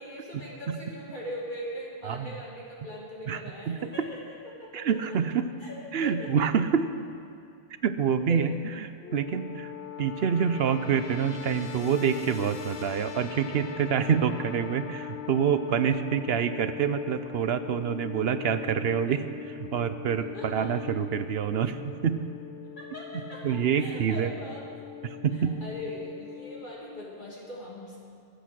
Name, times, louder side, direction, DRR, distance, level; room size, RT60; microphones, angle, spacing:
voice 1, 0.0-4.2 4.6-5.2 5.6-5.8 6.0-6.4 8.3-8.4 20.3-20.7 22.8-24.7 25.3-28.0, left 1 dB, 50° left, -5 dB, 2.8 m, -40 dB
voice 2, 3.3-3.9 4.7-5.5 5.9-6.9 7.8-9.7 10.0-22.2 23.4-24.3 25.0-25.6, right 7 dB, 70° right, 11 dB, 0.9 m, -27 dB
sound 1, 9.0-26.6, left 9 dB, 75° left, 1.2 m, -41 dB
22.5 x 8.3 x 6.2 m, 2.5 s
omnidirectional pair, 1.1 m